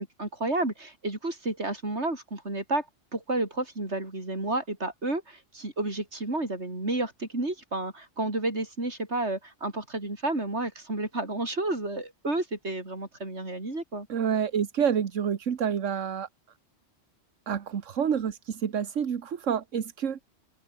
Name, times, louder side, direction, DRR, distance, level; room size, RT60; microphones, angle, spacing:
voice 1, 0.2-2.9 3.1-14.1, right 2 dB, 60° right, 5.3 m, -31 dB
voice 2, 14.1-16.3 17.5-20.2, right 7 dB, 75° right, 1.6 m, -28 dB
open air
omnidirectional pair, 1.3 m